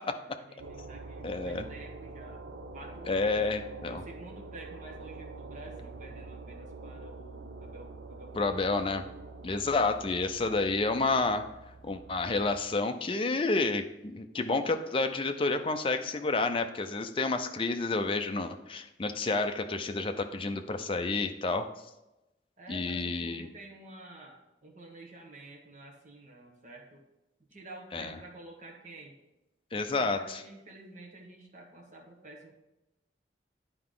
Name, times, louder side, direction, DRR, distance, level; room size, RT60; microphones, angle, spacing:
voice 1, 0.0-2.4 2.7-3.4 3.9-8.8 22.6-27.0 27.5-29.1 29.7-32.5, right 2 dB, 45° right, 0 dB, 1.5 m, -50 dB
sound 1, 0.6-12.6, right 3 dB, 85° right, 0.6 m, -46 dB
voice 2, 1.2-1.6 3.1-4.0 8.3-9.1 9.4-11.5 11.8-21.7 22.7-23.5 27.9-28.1 29.7-30.4, left 3 dB, 30° left, 7 dB, 0.5 m, -30 dB
10.0 x 4.7 x 3.8 m, 0.95 s
head